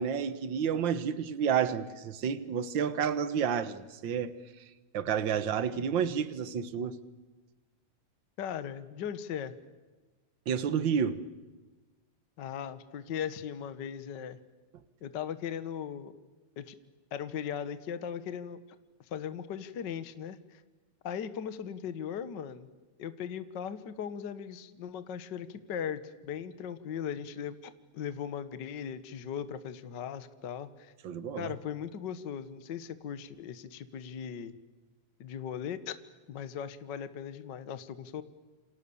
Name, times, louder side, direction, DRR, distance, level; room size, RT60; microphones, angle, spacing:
voice 1, 0.0-4.3 4.9-7.0 10.5-11.2 31.0-31.5, right 7 dB, 50° right, 14 dB, 1.6 m, -30 dB
voice 2, 8.4-9.5 12.4-14.4 15.0-16.1 16.6-16.7 17.1-18.6 19.1-20.6 21.0-22.7 23.0-30.9 31.3-34.5 35.2-35.9 36.3-38.2, left 8 dB, 55° left, 12 dB, 1.3 m, -38 dB
28.5 x 27.5 x 7.1 m, 1.2 s
omnidirectional pair, 3.4 m